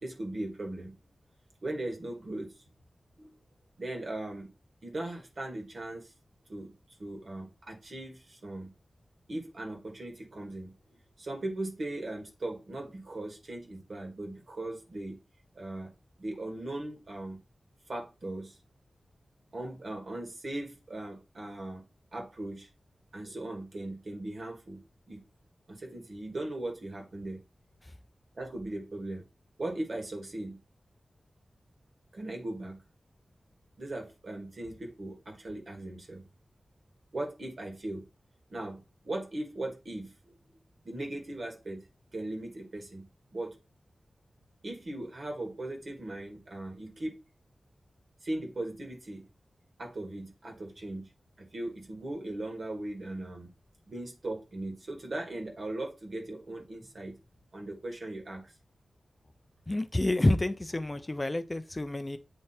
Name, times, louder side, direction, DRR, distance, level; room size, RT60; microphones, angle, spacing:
voice 1, 0.0-1.0 1.6-2.5 3.2-3.3 3.8-4.5 4.8-6.1 6.5-6.7 7.0-8.7 9.3-10.8 11.2-15.2 15.6-15.9 16.2-17.4 17.9-18.6 19.5-21.9 22.1-22.7 23.1-25.2 25.7-27.4 28.4-29.2 29.6-30.6 32.1-32.8 33.8-36.2 37.1-38.1 38.5-40.4 40.8-41.9 42.1-43.1 43.3-43.6 44.6-47.1 48.2-49.3 49.8-51.1 51.4-53.5 53.9-57.2 57.5-58.5, right 1 dB, 55° right, 1.9 m, -38 dB
voice 2, 59.7-62.2, left 1 dB, 25° left, 0.5 m, -28 dB
8.4 x 3.3 x 4.4 m
wide cardioid pair, 105°, 0 cm